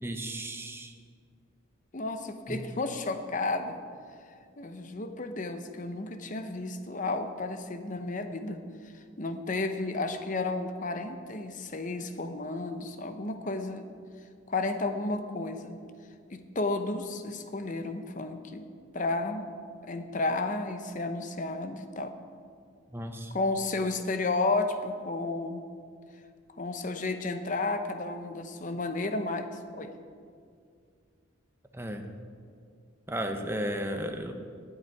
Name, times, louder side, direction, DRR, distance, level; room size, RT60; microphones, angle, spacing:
voice 1, 0.0-0.9 2.5-2.6 22.9-23.3 31.7-32.1 33.1-34.3, right 1 dB, 10° right, 5 dB, 0.8 m, -34 dB
voice 2, 1.9-3.8 4.6-8.6 8.9-13.8 14.5-15.8 16.3-18.7 18.9-19.5 19.8-22.1 23.3-25.6 26.6-29.9, left 2 dB, 40° left, 8 dB, 0.8 m, -32 dB
19.0 x 8.0 x 4.7 m, 2.2 s
head